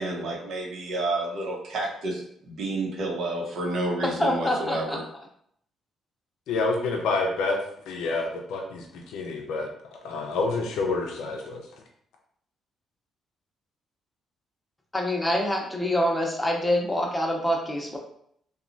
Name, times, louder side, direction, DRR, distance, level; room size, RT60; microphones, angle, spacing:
voice 1, 0.0-2.2 2.5-5.0, right 2 dB, 70° right, -2 dB, 0.8 m, -30 dB
voice 2, 4.0-5.0 14.9-18.0, left 1 dB, 10° left, 0 dB, 0.7 m, -26 dB
voice 3, 6.5-7.6 7.9-9.7 10.0-11.6, left 3 dB, 85° left, 1 dB, 0.4 m, -28 dB
3.0 x 2.3 x 2.5 m, 0.67 s
cardioid pair, 90°, 0 cm